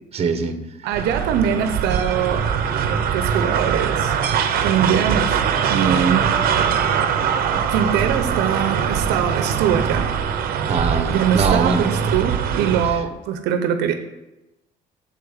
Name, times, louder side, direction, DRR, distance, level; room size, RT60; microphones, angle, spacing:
voice 1, 0.1-0.5 10.7-11.9, right 4 dB, 35° right, 8 dB, 1.0 m, -21 dB
voice 2, 0.8-2.5 3.1-4.1 4.6-5.4 5.7-6.3 7.7-10.1 11.1-13.9, right 8 dB, 85° right, 8 dB, 0.7 m, -22 dB
sound 1, 0.9-13.0, right 7 dB, 60° right, 0.8 m, -22 dB
7.3 x 4.8 x 7.1 m, 0.96 s
cardioid pair, 110°, 17 cm